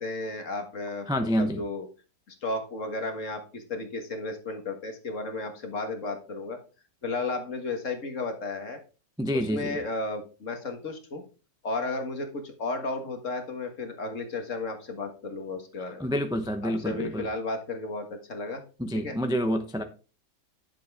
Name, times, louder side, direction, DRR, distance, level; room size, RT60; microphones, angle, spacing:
voice 1, 0.0-1.1 1.4-1.9 2.3-6.6 7.0-8.8 9.3-11.2 11.6-16.1 16.6-18.6 18.9-19.2, left 3 dB, 45° left, 1.9 m, -33 dB
voice 2, 1.1-1.6 9.2-9.8 16.0-17.2 18.8-19.8, equal, 5° right, 0.6 m, -28 dB
10.0 x 8.0 x 3.5 m
omnidirectional pair, 1.9 m